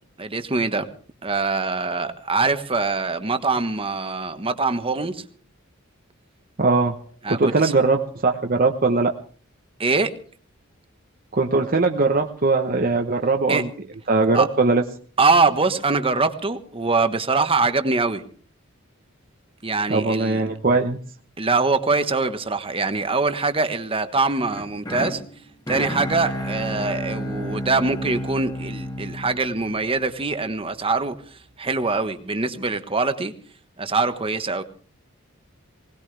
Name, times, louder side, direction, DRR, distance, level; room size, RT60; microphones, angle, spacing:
voice 1, 0.2-0.9 1.2-5.2 7.2-7.7 9.8-10.2 13.5-13.6 14.3-14.5 15.2-18.2 19.6-20.4 21.4-25.2 25.7-33.3 33.8-34.6, right 3 dB, 25° right, 9 dB, 1.3 m, -23 dB
voice 2, 6.6-7.0 7.3-9.1 11.4-13.7 14.1-14.8 19.9-21.0, right 3 dB, 45° right, 3 dB, 1.0 m, -20 dB
sound 1, 24.5-30.6, equal, 20° left, 2.1 m, -31 dB
21.0 x 19.0 x 3.4 m, 0.43 s
head